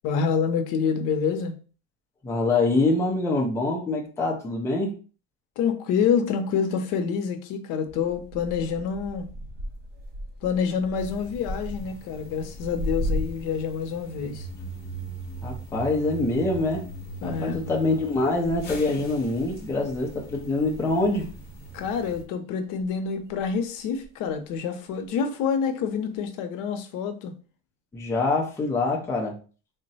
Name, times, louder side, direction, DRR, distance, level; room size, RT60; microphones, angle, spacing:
voice 1, 0.0-1.5 5.6-9.3 10.4-14.5 17.2-17.6 21.7-27.3, left 6 dB, 70° left, 0.7 m, -27 dB
voice 2, 2.2-5.0 15.4-16.9 17.2-21.3 27.9-29.4, left 2 dB, 10° left, 0.5 m, -25 dB
sound 1, 7.9-13.7 14.0-21.1 21.3-22.1 22.8-24.6 25.0-25.4 26.1-26.2, equal, 30° right, 0.7 m, -37 dB
sound 2, 11.0-22.2, right 3 dB, 30° left, 0.9 m, -41 dB
3.7 x 2.1 x 4.0 m
cardioid pair, 175°, 33 cm